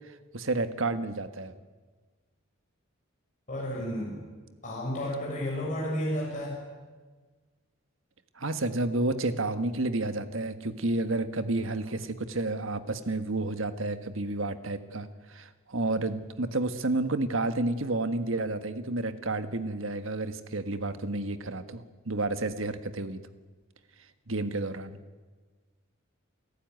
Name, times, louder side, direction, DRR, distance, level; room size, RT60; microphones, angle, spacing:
voice 1, 0.3-1.5 8.4-23.2 24.3-25.0, right 2 dB, 65° right, 10 dB, 1.5 m, -30 dB
voice 2, 3.5-4.2 4.6-6.6, equal, 35° left, -4 dB, 6.6 m, -32 dB
28.5 x 14.5 x 9.5 m, 1.4 s
head